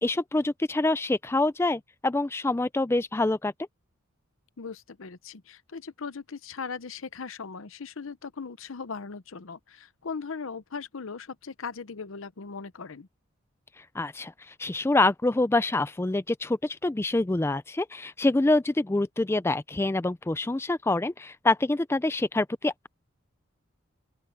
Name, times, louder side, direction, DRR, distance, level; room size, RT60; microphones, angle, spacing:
voice 1, 0.0-3.5 13.8-22.9, left 2 dB, 10° left, 0.3 m, -26 dB
voice 2, 4.6-13.1, left 5 dB, 75° left, 0.7 m, -39 dB
open air
head